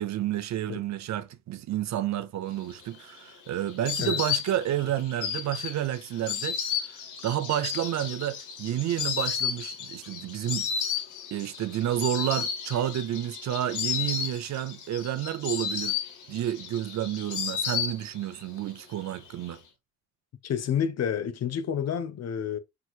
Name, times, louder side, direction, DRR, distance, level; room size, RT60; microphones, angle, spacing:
voice 1, 0.0-6.6 6.9-7.0 7.2-10.7 11.3-16.0 16.3-19.6, right 12 dB, 65° right, 0.7 m, -30 dB
Insect, 2.7-18.4 18.7-19.5, left 7 dB, 80° left, 1.2 m, -33 dB
voice 2, 20.4-22.6, left 8 dB, 55° left, 0.8 m, -29 dB
5.9 x 3.1 x 2.5 m
cardioid pair, 90°, 30 cm